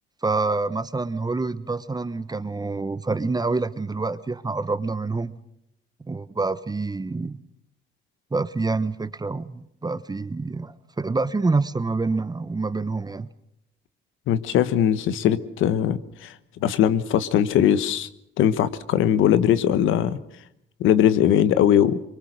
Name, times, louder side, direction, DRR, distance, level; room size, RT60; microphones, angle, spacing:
voice 1, 0.2-5.4 6.1-7.4 8.3-13.3, right 3 dB, 20° right, 14 dB, 1.2 m, -27 dB
voice 2, 14.3-16.3 16.6-18.1 18.4-20.2 20.8-22.0, left 10 dB, 85° left, 14 dB, 1.2 m, -20 dB
24.5 x 23.0 x 6.6 m, 0.78 s
cardioid pair, 90°, 20 cm